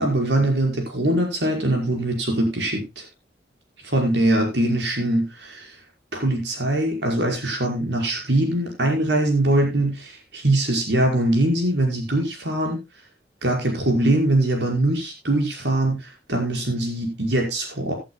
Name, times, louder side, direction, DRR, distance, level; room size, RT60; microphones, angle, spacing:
voice 1, 0.0-3.0 3.8-5.7 6.1-12.8 13.4-16.0 16.3-17.9, right 1 dB, 85° right, 2 dB, 5.3 m, -22 dB
18.0 x 11.5 x 2.3 m, 0.24 s
head